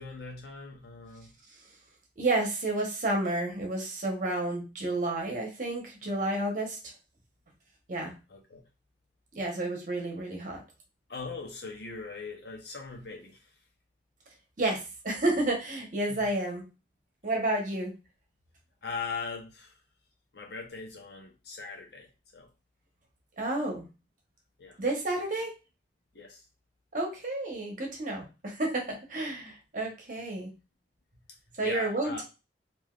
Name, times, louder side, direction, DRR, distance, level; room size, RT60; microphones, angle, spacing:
voice 1, 0.0-1.3 6.0-6.4 8.3-8.6 11.1-13.5 16.1-16.3 18.8-19.7 20.3-22.5 24.6-24.8 26.1-26.4 31.6-32.2, left 4 dB, 65° left, 1 dB, 0.8 m, -40 dB
voice 2, 2.2-6.9 7.9-8.1 9.3-10.6 14.6-16.6 17.2-17.9 23.4-23.9 24.8-25.5 26.9-30.5 31.6-32.2, right 2 dB, 45° right, 0 dB, 1.0 m, -30 dB
3.4 x 2.6 x 2.4 m, 0.29 s
head